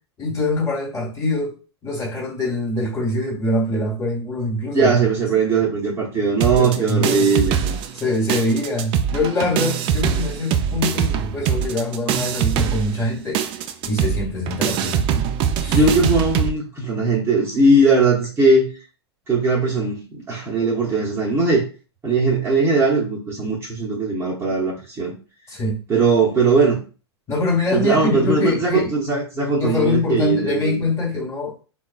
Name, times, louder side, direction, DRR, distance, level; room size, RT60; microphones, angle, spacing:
voice 1, 0.2-1.5 1.8-4.9 6.6-7.3 7.9-13.4 13.8-15.1 15.6-15.8 25.5-25.8 27.3-28.9 29.6-31.5, left 2 dB, 20° left, 1.4 m, -23 dB
voice 2, 4.7-7.8 15.7-18.7 19.3-21.7 22.0-25.1 25.9-26.8 27.7-30.8, right 3 dB, 20° right, 0.8 m, -19 dB
sound 1, 6.4-8.0 8.3-16.5, right 8 dB, 35° right, 0.4 m, -22 dB
3.6 x 2.3 x 2.3 m
hypercardioid pair, 110°, 14 cm